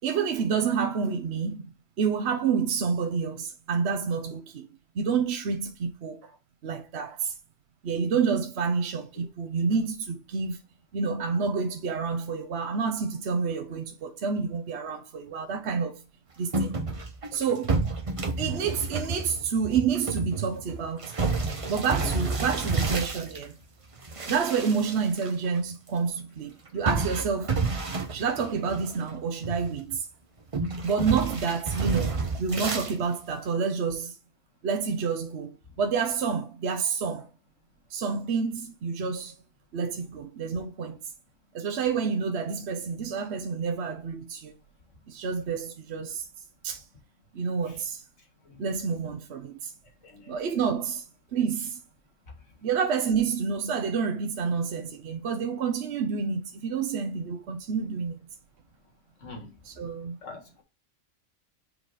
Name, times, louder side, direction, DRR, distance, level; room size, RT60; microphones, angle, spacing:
voice 1, 0.0-4.7 4.9-6.4 6.6-7.3 7.8-10.6 10.9-16.0 16.4-16.8 17.3-17.8 18.4-21.1 21.7-23.6 24.3-27.6 28.1-30.1 30.8-34.1 34.6-37.3 37.9-39.3 39.7-41.0 41.5-44.5 45.1-46.3 46.6-46.8 47.3-48.0 48.6-49.7 50.3-51.1 51.3-51.8 52.6-58.2 59.6-60.2, right 6 dB, 65° right, 1.0 m, -29 dB
sound 1, 16.5-23.4 24.0-25.3 25.6-25.7 26.9-29.1 29.4-30.0 30.5-32.9, right 3 dB, 30° right, 0.8 m, -30 dB
voice 2, 50.0-50.4 59.2-59.5 60.2-60.6, left 3 dB, 85° left, 2.2 m, -43 dB
4.9 x 3.9 x 4.8 m
omnidirectional pair, 1.2 m